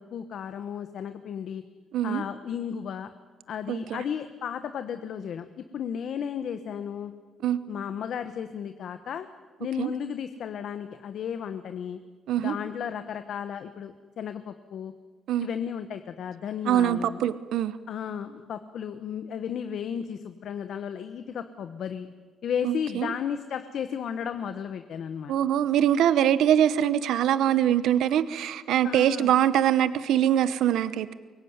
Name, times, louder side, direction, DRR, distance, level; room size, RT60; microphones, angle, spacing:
voice 1, 0.0-1.6 2.0-3.1 3.5-5.5 5.7-7.1 7.7-9.3 9.6-12.0 12.4-14.9 15.4-17.2 17.9-22.1 22.4-25.4 28.8-29.3, left 8 dB, 60° left, 9 dB, 1.2 m, -34 dB
voice 2, 3.7-4.0 7.4-7.6 9.8-9.9 12.3-12.5 15.3-15.5 16.7-17.8 22.6-23.1 25.3-31.2, right 10 dB, 80° right, 14 dB, 0.9 m, -23 dB
25.0 x 22.5 x 9.5 m, 1.5 s
cardioid pair, 140°, 0 cm